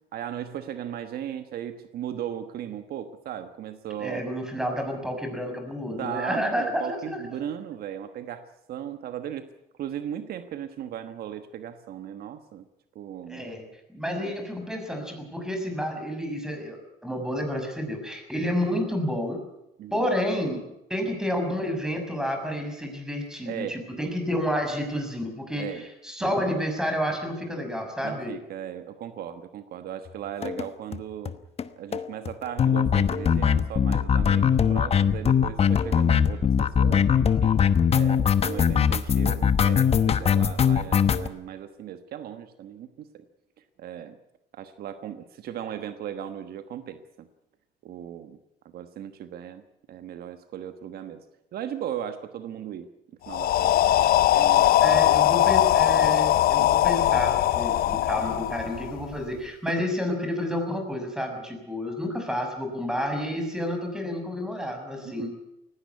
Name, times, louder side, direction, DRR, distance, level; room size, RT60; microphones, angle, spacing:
voice 1, 0.1-4.2 6.0-9.5 9.8-12.6 12.9-13.4 14.1-14.3 19.8-20.1 23.4-23.8 25.5-25.9 26.2-26.3 28.0-31.3 31.8-37.6 37.9-43.1 43.8-44.2 44.5-47.3 47.8-48.4 48.7-49.6 49.9-51.2 51.5-52.9 53.3-53.7 54.3-55.1 55.4-55.6 56.6-56.7 57.9-58.0 65.0-65.3, right 10 dB, 65° right, 10 dB, 1.3 m, -37 dB
voice 2, 4.0-7.2 13.3-13.6 13.9-19.4 19.9-28.4 54.8-65.3, equal, 5° right, 4 dB, 6.2 m, -30 dB
sound 1, 30.4-30.6 30.9-31.0 31.3-31.4 31.6-31.7 31.9-41.3, left 7 dB, 35° left, 1.1 m, -21 dB
sound 2, 53.3-59.2, left 13 dB, 65° left, 0.7 m, -21 dB
19.0 x 17.0 x 9.4 m, 0.89 s
cardioid pair, 110°, 17 cm